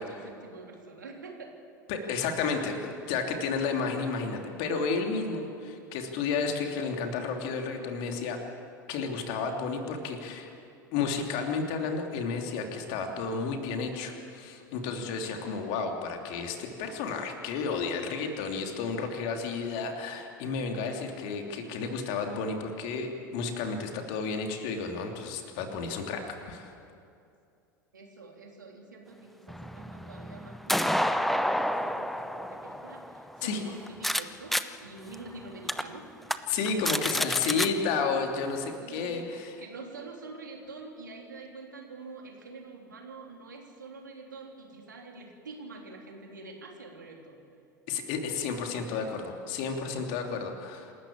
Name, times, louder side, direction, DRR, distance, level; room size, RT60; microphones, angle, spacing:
voice 1, 0.0-1.5 15.2-15.5 19.5-19.7 27.9-36.0 37.1-37.9 38.8-39.3 39.6-47.4, right 3 dB, 75° right, 1 dB, 3.4 m, -46 dB
voice 2, 1.9-8.4 8.9-10.5 10.9-26.7 33.4-33.6 36.5-39.6 47.9-50.9, left 5 dB, 50° left, 3 dB, 2.9 m, -32 dB
sound 1, 29.5-34.2 34.5-34.6 35.1-35.2 35.7-35.8 36.2-36.4 36.7-37.7, equal, ahead, 0.8 m, -29 dB
27.5 x 13.5 x 8.8 m, 2.5 s
figure-of-eight pair, 80°, 10 cm